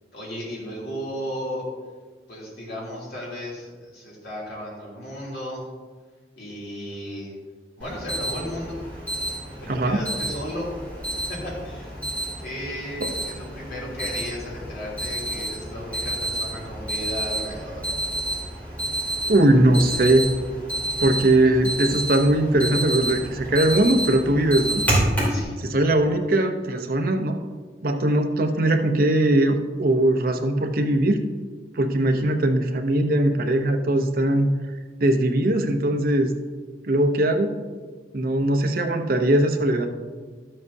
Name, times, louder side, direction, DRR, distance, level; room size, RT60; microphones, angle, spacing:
voice 1, 0.1-1.6 2.3-5.7 6.4-7.3 7.8-8.8 9.6-10.7 11.3-11.9 12.4-17.8 25.3-25.6, equal, 65° left, -5 dB, 2.9 m, -34 dB
Alarm, 7.8-25.4, right 1 dB, 10° left, 2.8 m, -29 dB
voice 2, 9.7-10.0 13.0-13.1 19.3-20.3 21.0-24.8 25.6-27.4 27.8-31.2 31.7-34.5 35.0-36.3 36.9-37.5 38.1-39.9, right 1 dB, 55° right, 5 dB, 0.8 m, -20 dB
12.0 x 7.6 x 2.7 m, 1.5 s
head